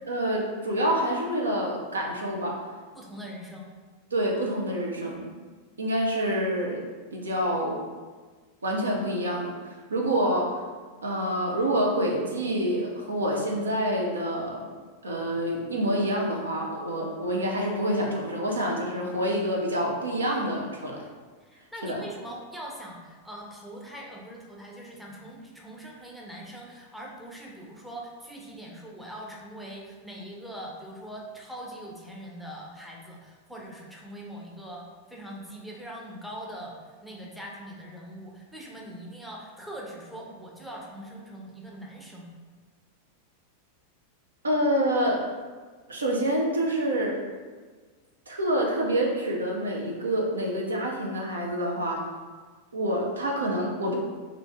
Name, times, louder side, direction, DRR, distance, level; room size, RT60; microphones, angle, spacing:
voice 1, 0.1-2.6 4.1-5.3 5.8-6.8 7.1-7.8 8.6-10.6 11.0-14.7 15.0-21.0 21.8-22.0 44.4-45.2 45.9-47.2 48.3-52.0 52.7-54.0, equal, 75° right, -1 dB, 0.5 m, -27 dB
voice 2, 2.9-3.7 21.4-42.3, right 1 dB, ahead, -3 dB, 0.5 m, -42 dB
2.7 x 2.6 x 3.3 m, 1.4 s
figure-of-eight pair, 90°, 0 cm